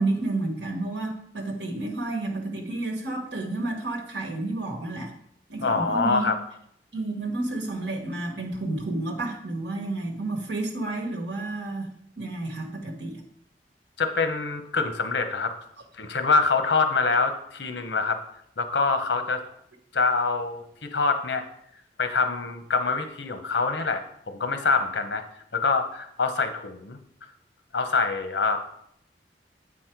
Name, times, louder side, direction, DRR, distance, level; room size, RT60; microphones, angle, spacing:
voice 1, 0.0-5.1 5.5-6.3 6.9-11.9 12.2-13.2, right 2 dB, 80° right, 1 dB, 1.3 m, -30 dB
voice 2, 5.6-6.4 14.0-15.5 16.0-18.2 18.6-19.4 19.9-21.4 22.0-25.2 25.5-27.0 27.7-28.6, left 4 dB, 80° left, 7 dB, 0.9 m, -25 dB
8.2 x 4.2 x 4.5 m, 0.71 s
head